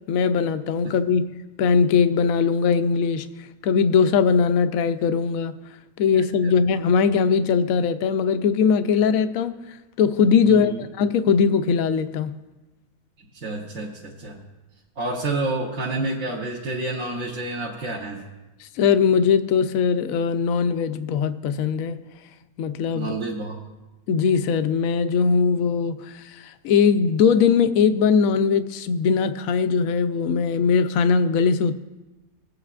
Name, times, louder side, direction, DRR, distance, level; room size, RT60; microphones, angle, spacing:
voice 1, 0.1-1.3 1.6-3.3 3.6-5.6 6.0-12.3 18.6-22.0 22.6-23.2 24.1-31.8, left 6 dB, 70° left, 10 dB, 0.9 m, -20 dB
voice 2, 10.4-10.8 13.4-14.4 15.0-18.2 22.9-23.6, right 2 dB, 55° right, -5 dB, 1.4 m, -29 dB
24.0 x 8.0 x 2.4 m, 1.1 s
omnidirectional pair, 1.7 m